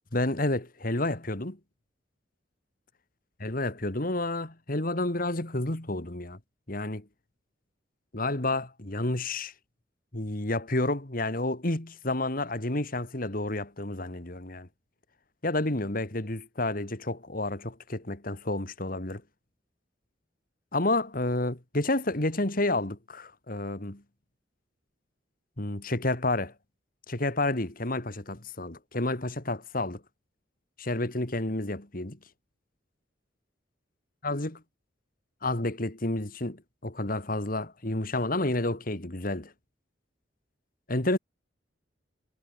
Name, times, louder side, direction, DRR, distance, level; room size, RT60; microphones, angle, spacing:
voice 1, 0.1-1.6 3.4-6.4 6.7-7.1 8.1-9.5 10.1-14.7 15.4-19.2 20.7-24.0 25.6-26.5 27.1-30.0 30.8-32.2 34.2-34.6 35.4-39.5 40.9-41.2, left 2 dB, 45° left, 2.5 m, -30 dB
head